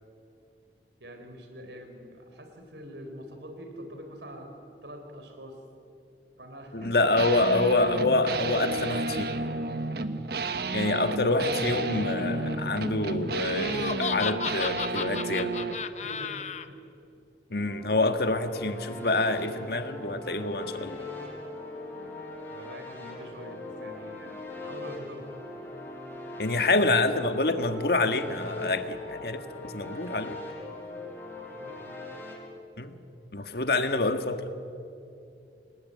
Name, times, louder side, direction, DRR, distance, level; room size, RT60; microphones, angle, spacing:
voice 1, 1.0-4.5 4.8-5.6 6.4-7.1 9.8-9.9 10.8-11.0 16.0-16.4 16.7-16.8 22.5-25.3 31.3-32.0, equal, 75° right, 5 dB, 3.8 m, -44 dB
voice 2, 6.7-9.3 10.7-15.5 17.5-21.1 26.4-30.4 32.8-33.0 33.3-34.5, left 2 dB, 60° left, 8 dB, 1.6 m, -27 dB
sound 1, 7.2-15.8, right 3 dB, 60° right, 1.2 m, -31 dB
Laughter, 13.6-16.7, left 6 dB, 40° left, 0.9 m, -34 dB
sound 2, 17.6-32.3, left 2 dB, 15° left, 6.7 m, -41 dB
28.5 x 19.5 x 9.6 m, 2.7 s
head